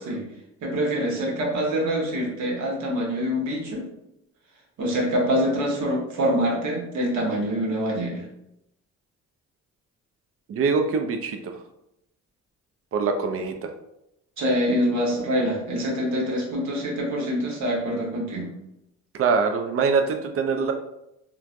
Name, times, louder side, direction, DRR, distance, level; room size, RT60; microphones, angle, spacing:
voice 1, 0.6-3.8 4.8-8.3 14.4-18.5, equal, 70° right, -2 dB, 1.1 m, -25 dB
voice 2, 10.5-11.5 12.9-13.7 19.1-20.7, right 5 dB, 50° right, 5 dB, 0.5 m, -23 dB
3.1 x 2.2 x 2.4 m, 0.84 s
cardioid pair, 90°, 30 cm